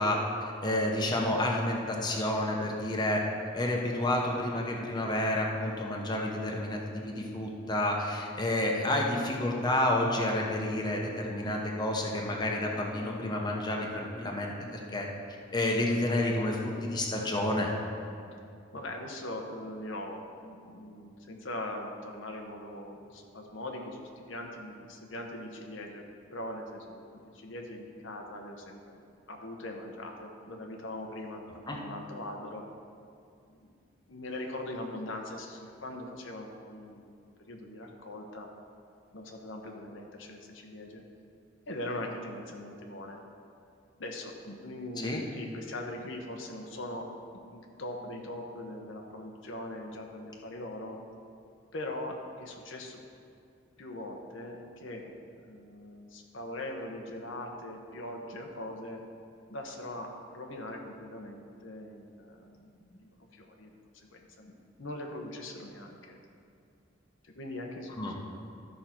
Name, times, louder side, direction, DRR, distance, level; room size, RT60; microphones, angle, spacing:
voice 1, 0.0-3.2 3.5-6.8 7.0-15.1 15.5-17.7 31.7-31.8 45.0-45.2 68.0-68.1, left 1 dB, 20° left, -1 dB, 1.0 m, -30 dB
voice 2, 18.7-26.0 26.3-29.0 29.3-32.6 33.5-33.7 34.1-37.2 37.5-38.5 39.1-41.0 41.7-43.2 44.0-47.1 47.3-51.0 51.7-53.0 53.8-59.0 59.5-64.5 64.8-66.2 67.2-68.3, left 1 dB, 85° left, 2 dB, 1.1 m, -41 dB
13.0 x 5.7 x 4.4 m, 2.4 s
head